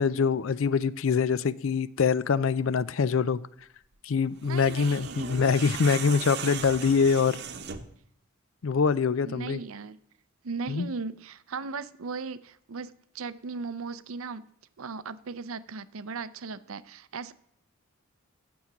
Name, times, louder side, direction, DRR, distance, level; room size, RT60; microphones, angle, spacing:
voice 1, 0.0-3.4 4.0-7.4 8.6-9.6 10.7-10.9, left 5 dB, 70° left, 0.4 m, -24 dB
sound 1, 4.4-8.0, right 7 dB, 50° right, 0.9 m, -38 dB
voice 2, 4.4-5.5 9.2-10.0 10.4-14.5 14.8-17.3, right 4 dB, 80° right, 0.6 m, -37 dB
9.4 x 7.2 x 5.9 m
head